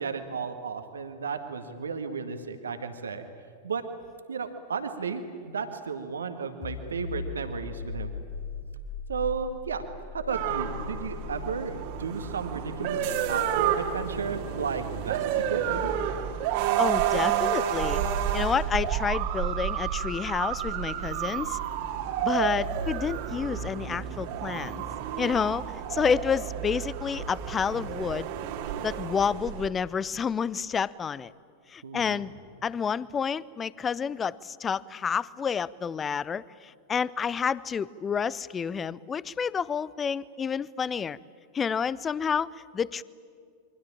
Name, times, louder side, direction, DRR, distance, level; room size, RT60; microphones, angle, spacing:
voice 1, 0.0-3.2 3.6-3.8 4.3-8.2 9.1-9.8 10.1-15.2 15.5-15.9 31.8-32.2, right 5 dB, 70° right, 7 dB, 1.9 m, -33 dB
sound 1, 6.6-18.0, left 6 dB, 45° left, 3.1 m, -41 dB
sound 2, 10.3-29.7, right 9 dB, 50° right, 2.3 m, -30 dB
voice 2, 16.8-18.0 18.3-21.6 22.2-24.8 25.2-25.6 25.9-28.3 28.8-31.3 31.7-32.3 32.6-41.2 41.5-43.0, left 6 dB, 20° left, 22 dB, 0.6 m, -29 dB
27.5 x 23.5 x 8.8 m, 2.2 s
figure-of-eight pair, 90°, 0 cm